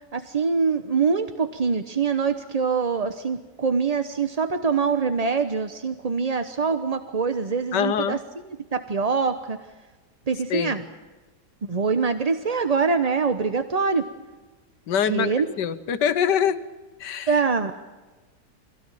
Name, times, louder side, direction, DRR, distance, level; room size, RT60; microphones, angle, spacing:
voice 1, 0.1-8.2 8.7-9.6 10.3-10.8 11.6-14.1 15.0-15.4 17.3-17.7, right 5 dB, 30° right, 9 dB, 0.7 m, -24 dB
voice 2, 7.7-8.2 10.5-10.8 14.9-15.3 15.6-16.6 17.0-17.3, left 8 dB, 85° left, 12 dB, 1.6 m, -24 dB
24.5 x 17.0 x 9.0 m, 1.2 s
omnidirectional pair, 1.8 m